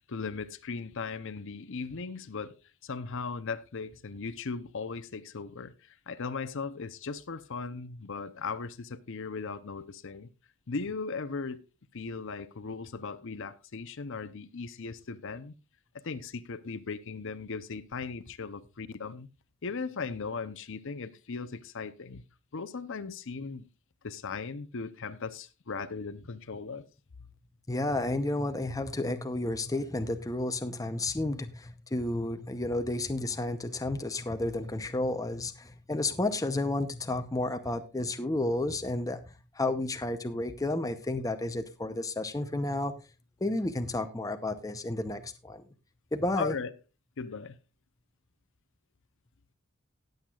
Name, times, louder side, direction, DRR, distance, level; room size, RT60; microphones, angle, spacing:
voice 1, 0.0-2.5 2.8-10.3 10.7-11.6 11.9-15.5 15.9-19.3 19.6-22.2 22.5-23.7 24.0-26.8 46.4-46.7 47.2-47.6, left 4 dB, 60° left, 0.7 m, -38 dB
voice 2, 27.7-42.9 43.4-45.7 46.1-46.5, left 2 dB, 15° left, 0.7 m, -31 dB
19.0 x 7.9 x 2.4 m
head